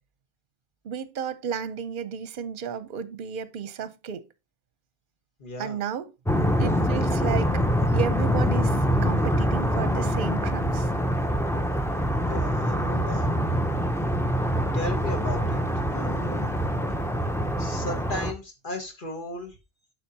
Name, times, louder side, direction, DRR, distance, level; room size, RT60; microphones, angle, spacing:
voice 1, 0.8-4.2 5.6-6.1 6.6-7.6 7.9-10.9, right 7 dB, 55° right, 0.8 m, -33 dB
voice 2, 5.4-5.8 12.2-13.3 14.7-15.6 15.9-16.5 17.6-19.5, left 1 dB, 50° left, 1.7 m, -35 dB
sound 1, 6.3-18.3, equal, 5° left, 0.4 m, -25 dB
11.5 x 4.9 x 2.7 m
omnidirectional pair, 1.1 m